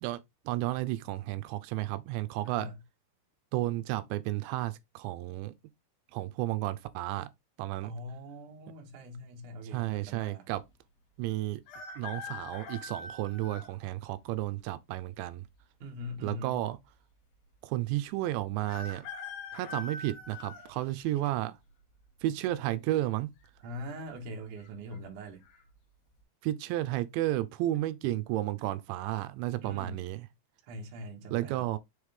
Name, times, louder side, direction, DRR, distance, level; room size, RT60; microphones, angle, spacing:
voice 1, 0.5-2.7 3.5-5.5 6.1-7.3 7.6-7.9 9.6-10.6 11.2-11.6 12.0-15.4 16.2-16.8 17.6-19.1 19.5-21.6 22.2-23.3 26.4-30.2 31.3-31.8, right 15 dB, 85° right, 2.9 m, -32 dB
voice 2, 2.5-2.8 7.8-10.5 15.8-16.6 23.6-25.4 29.6-30.1 30.7-31.7, equal, 60° right, 2.4 m, -42 dB
sound 1, 11.7-13.7 14.4-14.5 15.6-16.2 16.5-16.6 16.8-16.9 18.7-21.3 21.8-22.2 23.3-23.7 24.0-24.1 24.6-25.0 25.4-25.6, left 4 dB, 60° left, 3.0 m, -43 dB
7.1 x 4.8 x 3.5 m
omnidirectional pair, 5.2 m